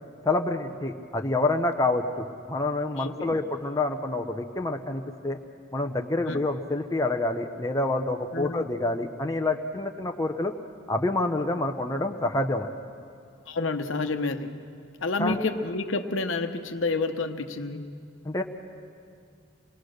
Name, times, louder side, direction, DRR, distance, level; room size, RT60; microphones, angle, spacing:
voice 1, 0.2-5.4 5.7-10.5 10.9-12.7 15.2-15.4 18.2-18.4, left 2 dB, 15° left, 3 dB, 0.8 m, -27 dB
voice 2, 2.9-3.4 6.2-6.4 8.3-8.6 13.5-14.5 15.0-17.9, left 3 dB, 70° left, 6 dB, 1.1 m, -29 dB
26.5 x 20.0 x 6.5 m, 2.3 s
head